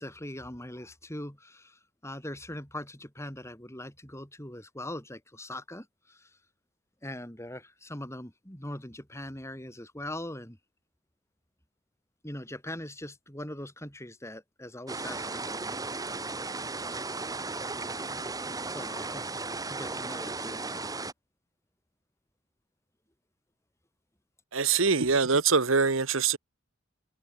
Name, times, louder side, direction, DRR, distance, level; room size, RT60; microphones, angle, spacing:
voice 1, 0.0-6.4 7.0-10.6 12.2-15.7 18.7-19.3 19.7-20.6, left 1 dB, 15° left, 5.8 m, -41 dB
sound 1, 14.9-21.1, right 3 dB, 20° right, 1.8 m, -35 dB
voice 2, 24.5-26.4, right 5 dB, 70° right, 1.4 m, -24 dB
head